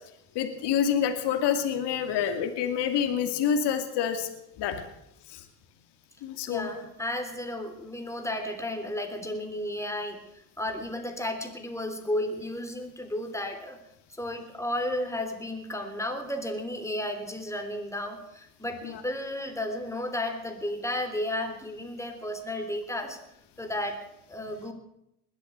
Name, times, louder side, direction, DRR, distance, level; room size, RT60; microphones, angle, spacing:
voice 1, 0.3-4.3 4.6-4.8 5.3-5.4 6.2-6.7 18.8-19.0, left 8 dB, 60° left, 7 dB, 2.5 m, -27 dB
voice 2, 6.5-10.2 10.6-13.8 14.2-23.2 23.6-24.7, left 1 dB, 5° left, 5 dB, 3.4 m, -33 dB
20.5 x 8.2 x 8.2 m, 0.81 s
hypercardioid pair, 75°, 46 cm